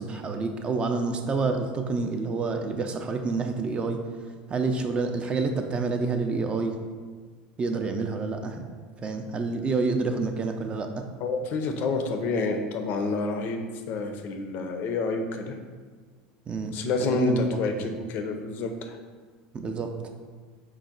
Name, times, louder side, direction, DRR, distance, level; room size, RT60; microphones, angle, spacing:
voice 1, 0.0-4.0 4.5-6.8 7.6-8.6 9.0-11.0 16.5-16.7 17.0-17.9 19.5-19.9, right 4 dB, 25° right, 5 dB, 0.4 m, -28 dB
voice 2, 11.2-15.6 16.7-19.0, left 4 dB, 55° left, 5 dB, 0.5 m, -29 dB
4.6 x 2.1 x 3.8 m, 1.5 s
supercardioid pair, 105°, 4 cm